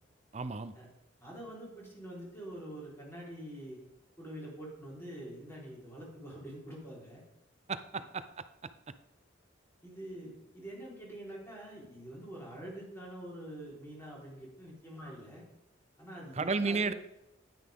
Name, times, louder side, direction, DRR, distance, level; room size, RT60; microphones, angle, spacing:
voice 1, 0.3-0.7 7.7-8.2 16.4-16.9, right 4 dB, 35° right, 12 dB, 0.5 m, -32 dB
voice 2, 1.2-3.8 4.2-7.2 9.8-15.4 16.0-17.0, right 1 dB, 15° left, -5 dB, 4.1 m, -45 dB
10.5 x 9.7 x 3.6 m, 0.90 s
head